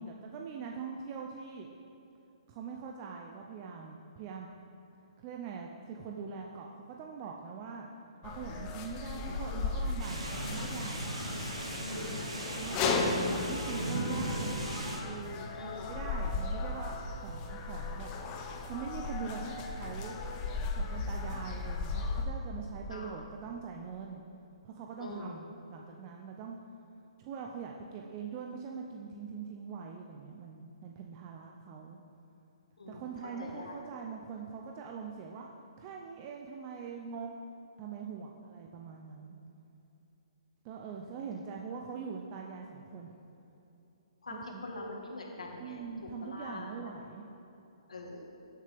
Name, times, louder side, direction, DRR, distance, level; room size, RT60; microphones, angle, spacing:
voice 1, 0.0-1.7 2.5-4.5 5.2-7.9 8.2-11.0 12.5-14.6 15.0-18.1 18.5-20.2 20.8-24.2 24.6-26.6 27.2-32.0 32.9-35.5 35.8-37.3 37.8-39.4 40.6-43.1 44.3-44.6 45.6-47.3, right 5 dB, 30° right, 1 dB, 0.6 m, -43 dB
sound 1, 8.2-22.3, left 3 dB, 25° left, 0.9 m, -36 dB
sound 2, 10.0-15.0, right 1 dB, 85° right, 2.2 m, -37 dB
voice 2, 11.8-12.3 15.5-15.9 22.9-23.0 25.0-25.3 32.8-33.0 33.4-33.8 44.2-46.7 47.9-48.2, left 2 dB, 85° left, -1 dB, 1.7 m, -43 dB
16.0 x 6.7 x 3.5 m, 2.9 s
hypercardioid pair, 145°, 3 cm